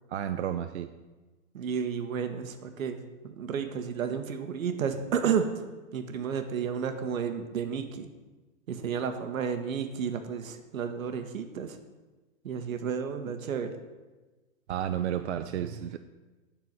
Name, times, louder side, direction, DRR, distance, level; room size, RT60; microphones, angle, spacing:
voice 1, 0.1-0.9 14.7-16.0, right 10 dB, 55° right, 9 dB, 0.5 m, -32 dB
voice 2, 1.5-5.6 5.9-8.1 8.7-11.8 12.4-13.7, right 7 dB, 80° right, 8 dB, 1.3 m, -32 dB
9.3 x 4.7 x 7.6 m, 1.2 s
hypercardioid pair, 170°, 41 cm